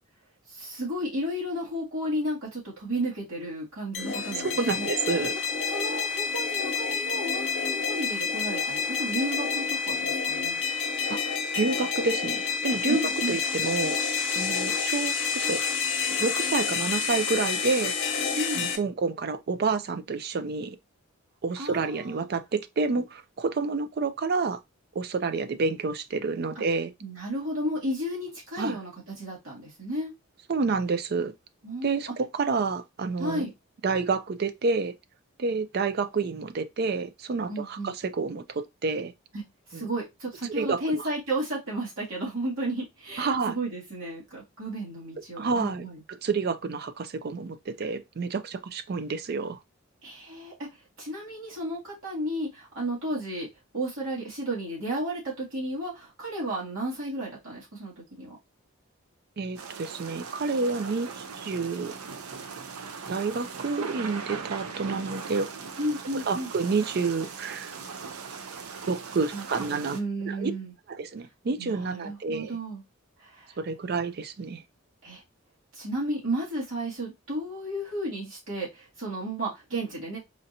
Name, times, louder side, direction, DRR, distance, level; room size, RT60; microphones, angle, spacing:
voice 1, 0.5-4.9 5.7-10.6 12.9-13.4 18.4-18.6 21.6-22.2 26.6-26.7 27.0-28.9 29.2-30.1 31.6-32.0 33.2-33.5 37.5-37.9 39.3-39.4 39.7-46.0 50.0-50.7 51.0-53.5 53.7-58.4 65.8-66.5 69.3-70.7 71.6-72.8 73.2-73.6 75.0-75.2 75.8-80.2, right 1 dB, 65° right, 2.0 m, -33 dB
sound 1, 3.9-18.8, left 5 dB, 55° left, 0.8 m, -29 dB
voice 2, 4.3-5.3 11.1-11.2 11.5-13.0 13.3-14.0 14.4-15.6 16.2-17.9 18.5-20.8 21.4-24.6 24.9-26.9 28.6-28.8 30.5-31.3 31.8-33.5 33.8-34.9 35.4-39.1 39.7-39.9 40.5-41.1 43.2-43.6 45.4-49.6 59.4-61.9 63.1-65.5 66.1-67.7 68.9-70.0 70.2-70.5 71.0-72.6 73.6-74.6, right 4 dB, 45° right, 0.4 m, -29 dB
sound 2, 59.6-70.0, right 5 dB, 90° right, 0.6 m, -39 dB
4.3 x 2.6 x 2.8 m
head